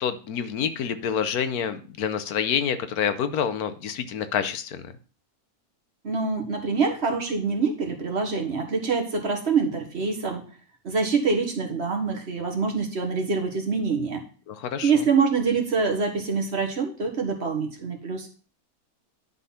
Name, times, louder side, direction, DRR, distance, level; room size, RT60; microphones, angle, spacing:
voice 1, 0.0-4.8 14.5-14.9, left 8 dB, 85° left, 11 dB, 1.3 m, -27 dB
voice 2, 6.0-10.4 10.8-14.2 14.8-18.3, right 5 dB, 45° right, 3 dB, 1.6 m, -25 dB
11.0 x 4.0 x 5.7 m, 0.40 s
omnidirectional pair, 1.6 m